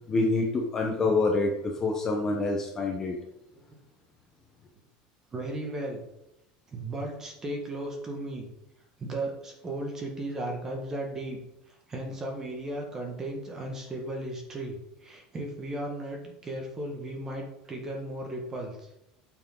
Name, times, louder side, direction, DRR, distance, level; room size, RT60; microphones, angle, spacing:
voice 1, 0.1-3.1, left 3 dB, 15° left, 1 dB, 0.8 m, -26 dB
voice 2, 5.3-6.0 6.7-8.5 9.0-11.4 11.7-14.8 15.0-18.9, right 1 dB, 15° right, 1 dB, 1.5 m, -35 dB
8.6 x 6.0 x 3.8 m, 0.86 s
cardioid pair, 180°, 3 cm